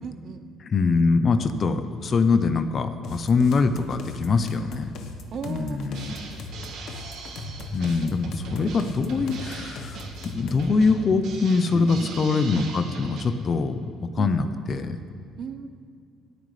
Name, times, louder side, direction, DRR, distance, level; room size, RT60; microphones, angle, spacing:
voice 1, 0.0-0.5 5.3-6.4 11.7-12.1 14.2-14.9 15.4-15.7, right 6 dB, 45° right, 8 dB, 0.8 m, -39 dB
voice 2, 0.7-4.9 5.5-6.1 7.7-10.1 10.3-13.8 14.2-15.0, left 4 dB, 35° left, 10 dB, 0.6 m, -23 dB
sound 1, 3.0-10.7, left 4 dB, 60° left, 1.1 m, -40 dB
Drum kit, 5.9-13.2, right 3 dB, 70° right, 1.9 m, -38 dB
27.5 x 9.3 x 3.3 m, 2.2 s
cardioid pair, 150°, 0 cm